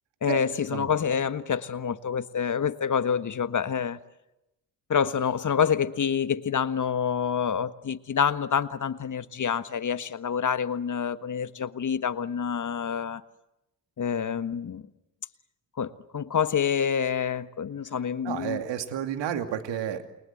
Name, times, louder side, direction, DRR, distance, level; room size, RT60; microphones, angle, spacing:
voice 1, 0.2-4.0 4.9-13.2 14.0-14.8 15.8-18.6, left 7 dB, 40° left, 12 dB, 1.5 m, -27 dB
voice 2, 18.2-20.1, right 10 dB, 65° right, 6 dB, 2.7 m, -31 dB
29.0 x 23.0 x 8.0 m, 0.94 s
hypercardioid pair, 45°, 47 cm